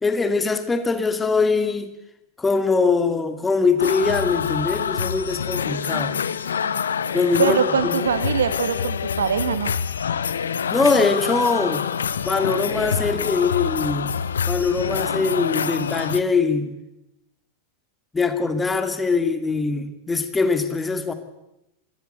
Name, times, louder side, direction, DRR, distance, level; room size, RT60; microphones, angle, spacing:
voice 1, 0.0-1.9 2.4-6.2 7.1-8.1 10.7-11.9 12.2-14.1 14.5-16.7 18.1-21.1, left 4 dB, 15° left, 9 dB, 2.3 m, -22 dB
sound 1, 3.8-16.2, left 7 dB, 70° left, 0.9 m, -26 dB
voice 2, 7.4-9.8, right 7 dB, 65° right, 11 dB, 2.1 m, -23 dB
25.0 x 16.5 x 8.0 m, 0.91 s
figure-of-eight pair, 90°, 0 cm